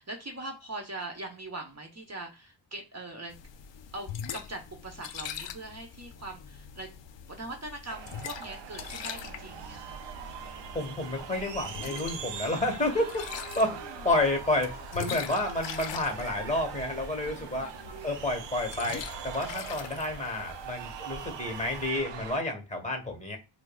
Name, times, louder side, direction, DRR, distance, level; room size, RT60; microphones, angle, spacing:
voice 1, 0.0-3.3 3.9-6.9 7.3-10.0 12.9-14.1 17.2-18.0, right 2 dB, 35° right, 2 dB, 0.9 m, -42 dB
sound 1, 3.3-21.9, left 8 dB, 65° left, 0.5 m, -43 dB
sound 2, 7.9-22.4, right 7 dB, 65° right, 0.5 m, -42 dB
voice 2, 10.7-13.2 13.5-17.7 18.0-23.4, left 1 dB, 15° left, 3 dB, 1.1 m, -30 dB
4.5 x 2.0 x 2.3 m, 0.29 s
cardioid pair, 55°, 48 cm